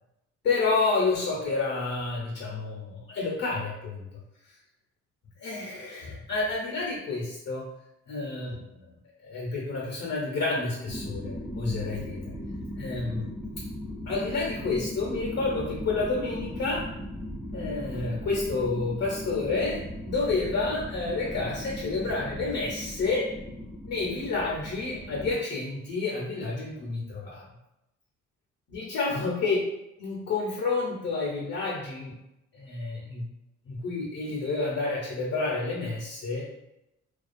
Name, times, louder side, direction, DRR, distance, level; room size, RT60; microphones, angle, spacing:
voice 1, 0.4-4.1 5.4-7.7 8.1-8.9 9.2-12.3 12.8-13.3 14.1-16.9 17.5-23.3 23.9-27.4 28.7-29.7 30.0-32.1 32.5-33.3 33.7-36.4, left 3 dB, 55° left, -3 dB, 0.7 m, -29 dB
sound 1, 10.9-25.3, equal, 5° right, 0.4 m, -38 dB
2.3 x 2.3 x 2.5 m, 0.88 s
cardioid pair, 90°, 30 cm